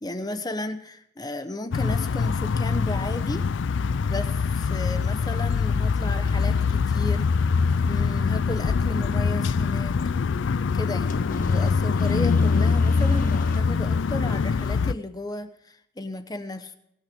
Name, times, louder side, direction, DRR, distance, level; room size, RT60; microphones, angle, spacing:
voice 1, 0.0-3.5 4.0-7.5 7.8-10.0 10.7-11.2 11.5-16.7, left 1 dB, 20° left, 9 dB, 0.8 m, -34 dB
sound 1, 1.7-14.9, left 5 dB, 75° left, 0.4 m, -23 dB
sound 2, 6.0-13.6, left 1 dB, 45° left, 1.2 m, -40 dB
23.0 x 8.7 x 3.6 m, 0.82 s
head